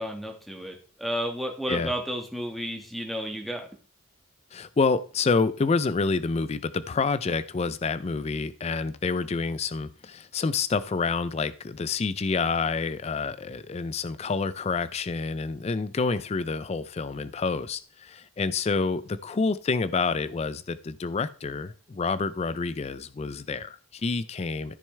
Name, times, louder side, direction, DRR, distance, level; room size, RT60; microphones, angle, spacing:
voice 1, 0.0-3.7, equal, ahead, 3 dB, 1.5 m, -32 dB
voice 2, 4.5-24.7, left 4 dB, 30° left, 14 dB, 0.4 m, -28 dB
14.0 x 6.4 x 3.3 m, 0.39 s
head